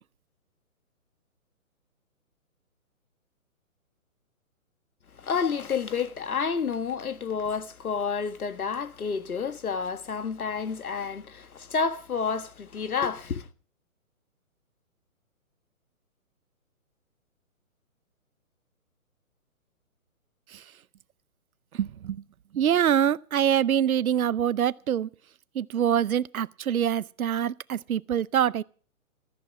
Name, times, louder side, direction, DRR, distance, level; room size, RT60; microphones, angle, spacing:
voice 1, 5.1-13.5, left 6 dB, 85° left, 1.6 m, -30 dB
voice 2, 21.7-22.2 22.5-25.1 25.5-28.6, right 9 dB, 75° right, 0.7 m, -25 dB
14.5 x 14.0 x 4.9 m
hypercardioid pair, 150°, 43 cm